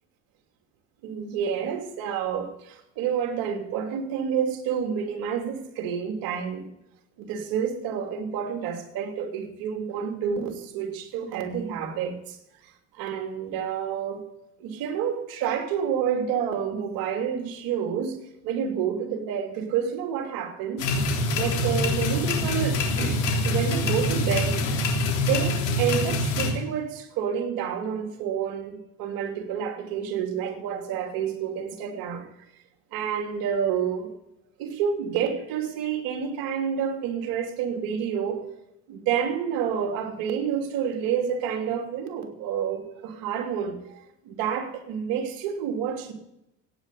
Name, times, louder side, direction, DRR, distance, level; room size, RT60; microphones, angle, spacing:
voice 1, 1.0-6.7 7.2-12.4 13.0-14.2 14.6-20.8 21.3-24.6 25.2-32.3 32.9-34.1 34.6-38.5 38.9-46.1, right 8 dB, 70° right, 2.9 m, -29 dB
sound 1, 20.8-26.5, left 2 dB, 85° left, 3.6 m, -25 dB
15.5 x 9.7 x 8.3 m
hypercardioid pair, 75°, 37 cm